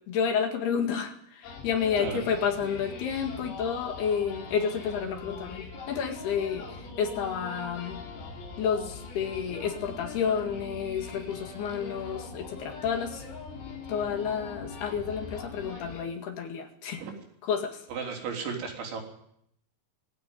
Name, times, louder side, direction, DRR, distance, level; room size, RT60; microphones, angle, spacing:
voice 1, 0.1-8.0 8.6-13.2 13.9-17.0 17.4-17.8, left 7 dB, 65° left, 5 dB, 3.7 m, -30 dB
sound 1, 1.4-16.0, left 3 dB, 85° left, 6.2 m, -42 dB
voice 2, 17.9-19.0, right 5 dB, 75° right, 2 dB, 5.8 m, -34 dB
20.5 x 16.0 x 9.2 m, 0.72 s
omnidirectional pair, 5.4 m